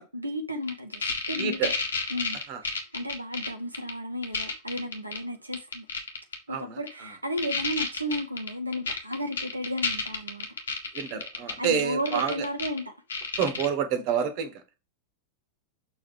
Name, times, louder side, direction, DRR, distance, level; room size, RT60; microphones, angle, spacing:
voice 1, 0.0-1.7 2.1-5.9 6.5-10.5 11.6-12.9, equal, 85° right, 0.9 m, -33 dB
sound 1, 0.7-3.5 3.7-3.9 4.2-5.2 5.5-6.3 6.9-7.0 7.4-12.8 13.1-13.7, left 4 dB, 70° left, 1.7 m, -30 dB
voice 2, 1.4-1.7 2.5-2.6 6.5-6.8 10.9-12.4 13.4-14.6, right 7 dB, 45° right, 1.4 m, -28 dB
7.0 x 4.0 x 4.8 m
figure-of-eight pair, 90°, 0 cm